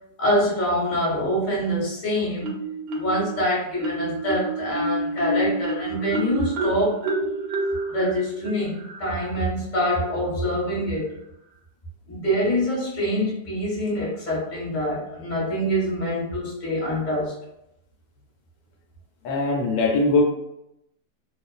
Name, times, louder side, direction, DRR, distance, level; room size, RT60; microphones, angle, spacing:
voice 1, 0.2-2.5 2.9-7.0 7.9-11.1 12.1-17.3, equal, 30° left, -6 dB, 1.1 m, -25 dB
Marimba xylophone, 2.4-3.3 3.8-9.3, right 1 dB, 80° right, 1.3 m, -28 dB
voice 2, 19.2-20.2, left 3 dB, 80° left, -1 dB, 1.4 m, -21 dB
2.9 x 2.4 x 2.3 m, 0.82 s
omnidirectional pair, 2.1 m